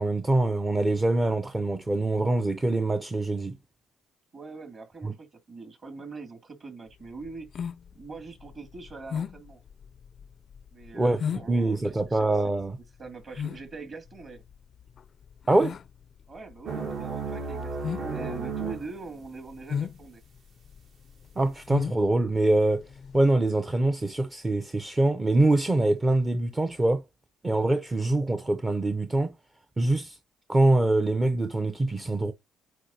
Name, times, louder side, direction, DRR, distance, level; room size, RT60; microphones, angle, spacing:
voice 1, 0.0-3.6 5.0-5.1 10.9-12.8 15.5-15.8 21.4-27.0 27.4-29.4 29.8-30.2 30.5-32.3, right 2 dB, 15° right, 0.6 m, -24 dB
voice 2, 4.3-7.5 7.9-9.6 10.7-12.2 13.0-14.4 16.3-20.2, right 3 dB, 40° right, 2.5 m, -42 dB
sound 1, 6.9-23.3, left 7 dB, 45° left, 0.4 m, -37 dB
sound 2, 16.6-18.9, right 4 dB, 60° right, 1.6 m, -33 dB
9.0 x 4.2 x 2.8 m
cardioid pair, 115°, 0 cm